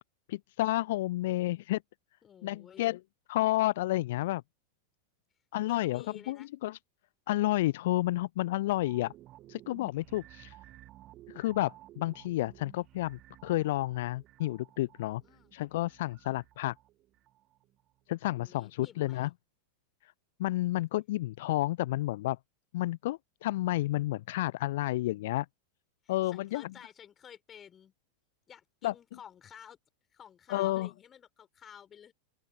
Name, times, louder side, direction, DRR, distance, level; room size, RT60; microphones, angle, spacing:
voice 1, 0.3-1.8 2.4-3.0 3.3-4.4 5.5-6.8 7.3-9.1 9.5-10.6 11.3-15.2 15.5-16.7 18.1-19.3 20.0-20.1 20.4-22.4 22.7-25.5 26.1-26.7 28.8-28.9 30.5-30.9, left 16 dB, 55° left, 0.7 m, -31 dB
voice 2, 2.2-2.9 5.7-6.5 15.2-15.6 18.4-19.3 26.0-27.9 28.5-29.8 30.1-32.1, left 8 dB, 25° left, 6.6 m, -53 dB
sound 1, 8.7-18.0 18.4-18.5, right 15 dB, 35° right, 1.7 m, -55 dB
open air
figure-of-eight pair, 90°, 0 cm